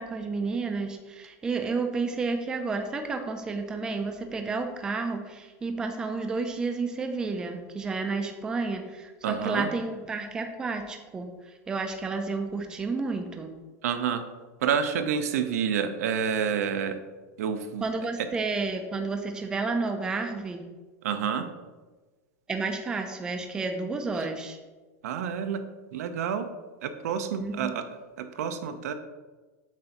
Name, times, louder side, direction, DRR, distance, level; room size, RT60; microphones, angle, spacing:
voice 1, 0.0-13.5 17.8-20.7 22.5-24.6 27.4-27.8, right 4 dB, 10° right, 5 dB, 0.4 m, -31 dB
voice 2, 9.2-9.7 13.8-14.2 14.6-17.0 17.4-17.9 18.2-18.3 21.0-21.5 24.2-24.3 25.0-25.6 25.9-26.5 26.8-27.8 28.2-28.9, right 7 dB, 85° right, 8 dB, 0.6 m, -28 dB
7.4 x 2.6 x 5.8 m, 1.3 s
supercardioid pair, 170°, 8 cm